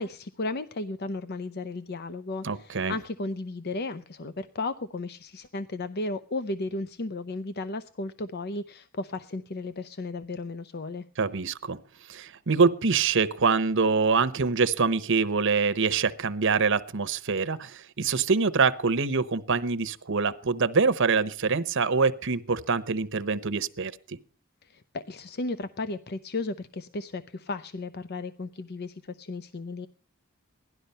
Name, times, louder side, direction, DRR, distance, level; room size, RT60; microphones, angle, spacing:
voice 1, 0.0-11.0 24.6-29.9, left 2 dB, 50° left, 12 dB, 0.7 m, -34 dB
voice 2, 2.4-2.9 11.2-11.8 12.1-24.2, right 4 dB, 65° right, 14 dB, 0.9 m, -25 dB
17.0 x 12.0 x 5.6 m, 0.42 s
head